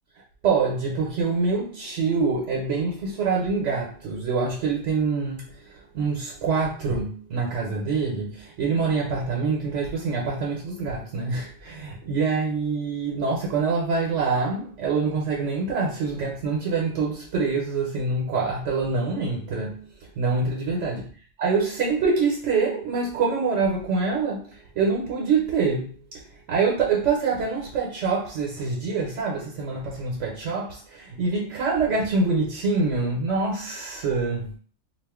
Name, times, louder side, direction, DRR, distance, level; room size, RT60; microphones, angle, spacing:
voice 1, 0.4-21.0 21.4-34.6, right 4 dB, 80° right, 1.1 m, -25 dB
2.5 x 2.4 x 3.5 m
omnidirectional pair, 1.3 m